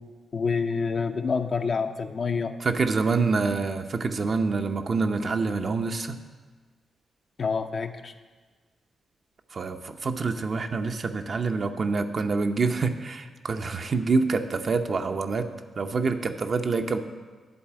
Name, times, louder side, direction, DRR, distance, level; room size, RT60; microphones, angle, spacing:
voice 1, 0.3-2.5 7.4-8.1, left 5 dB, 55° left, 7 dB, 0.6 m, -27 dB
voice 2, 2.6-6.2 9.5-15.5 15.8-17.0, right 4 dB, 55° right, 6 dB, 0.7 m, -26 dB
10.5 x 4.0 x 7.6 m, 1.4 s
supercardioid pair, 50°, 0 cm